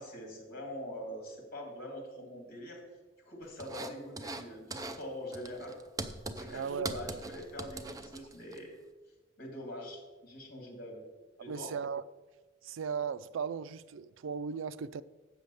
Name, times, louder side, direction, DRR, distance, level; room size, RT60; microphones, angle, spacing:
voice 1, 0.0-2.8 3.2-5.8 6.4-8.8 9.4-11.1 11.4-11.8, equal, 50° left, 2.6 m, -44 dB
sound 1, 3.6-4.4 4.7-5.0 5.3-8.6, right 2 dB, 15° right, 0.6 m, -41 dB
voice 2, 6.5-7.0 11.5-12.0 12.6-15.0, right 6 dB, 70° right, 0.4 m, -37 dB
7.9 x 6.4 x 6.9 m
head